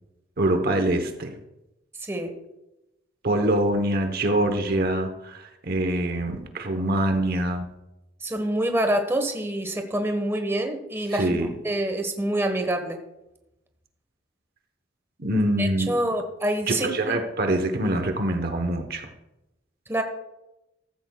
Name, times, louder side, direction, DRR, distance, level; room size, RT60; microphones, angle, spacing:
voice 1, 0.4-1.3 3.2-7.7 11.1-11.5 15.2-15.9 16.7-19.1, right 1 dB, 55° right, 6 dB, 1.0 m, -24 dB
voice 2, 2.0-2.3 8.2-11.4 11.6-13.0 15.6-16.9 19.9-20.0, right 1 dB, 15° right, 5 dB, 1.2 m, -26 dB
14.5 x 14.5 x 2.3 m, 0.95 s
head